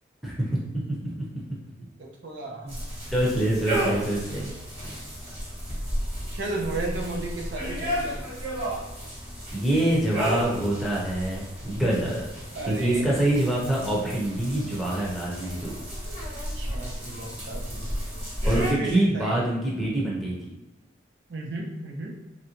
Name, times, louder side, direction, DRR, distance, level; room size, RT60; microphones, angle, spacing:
voice 1, 0.2-0.6 0.9-1.4 2.6-2.8 3.1-4.5 9.5-12.3 12.6-15.8 18.4-20.5, right 1 dB, ahead, -5 dB, 0.6 m, -25 dB
voice 2, 2.0-2.7 6.3-8.2 12.5-13.0 16.6-17.9 18.6-19.4 21.3-22.1, right 2 dB, 75° right, 0 dB, 0.6 m, -34 dB
sound 1, 2.7-18.7, equal, 30° right, 1.4 m, -33 dB
3.2 x 2.5 x 2.9 m, 0.99 s
head